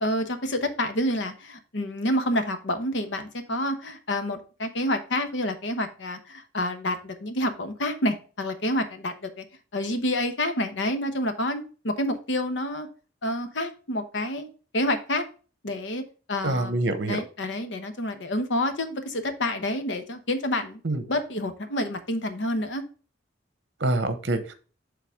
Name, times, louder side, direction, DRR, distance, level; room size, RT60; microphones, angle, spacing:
voice 1, 0.0-9.4 9.7-12.9 13.2-15.2 15.6-16.0 16.3-16.8 17.1-20.8 21.1-22.8, left 1 dB, 70° left, 9 dB, 1.0 m, -28 dB
voice 2, 16.4-17.2 20.8-21.0 23.8-24.5, right 2 dB, 65° right, 10 dB, 1.0 m, -26 dB
6.8 x 3.9 x 4.8 m, 0.37 s
head